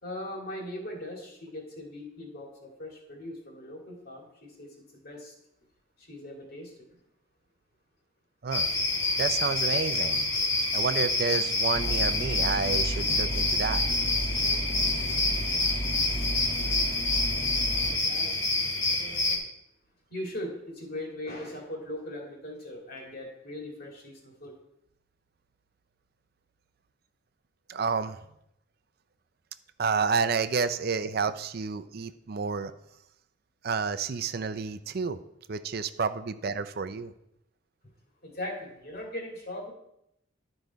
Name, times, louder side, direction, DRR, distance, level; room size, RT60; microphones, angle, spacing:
voice 1, 0.0-5.3 6.0-6.9 17.8-18.4 18.9-19.4 20.1-24.6 38.2-39.7, left 1 dB, 50° left, 0 dB, 2.3 m, -40 dB
sound 1, 8.5-19.4, left 2 dB, 70° left, 2.6 m, -27 dB
voice 2, 9.2-10.3 10.7-13.8 27.7-28.2 29.8-32.7 33.6-35.2 35.5-37.1, right 5 dB, 50° right, 11 dB, 0.5 m, -30 dB
sound 2, 11.7-18.0, equal, 25° left, 1.1 m, -33 dB
12.0 x 5.3 x 4.6 m, 0.79 s
head